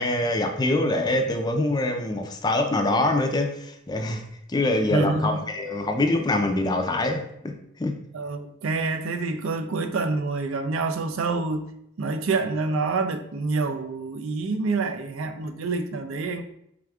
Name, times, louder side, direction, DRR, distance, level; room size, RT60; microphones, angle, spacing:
voice 1, 0.0-4.2 4.5-7.9, left 2 dB, 20° left, 0.4 m, -24 dB
voice 2, 4.9-5.4 8.1-11.7 12.0-16.4, right 3 dB, 80° right, 0.4 m, -27 dB
4.8 x 3.4 x 2.3 m
head